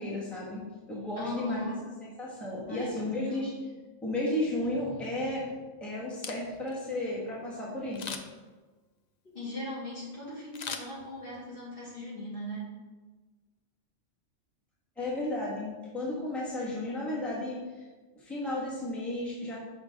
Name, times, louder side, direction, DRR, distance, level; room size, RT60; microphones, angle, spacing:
voice 1, 0.0-1.7 2.2-3.5 4.0-5.5 5.8-8.1 15.0-17.8 18.2-19.6, left 1 dB, ahead, -6 dB, 1.3 m, -33 dB
voice 2, 1.2-1.8 2.7-3.5 9.2-12.7, left 1 dB, 45° left, -6 dB, 2.1 m, -39 dB
Camera, 6.0-6.8 7.9-8.5 10.5-11.5 11.9-12.0, left 6 dB, 65° left, 0.4 m, -40 dB
6.5 x 5.3 x 3.6 m, 1.3 s
omnidirectional pair, 1.3 m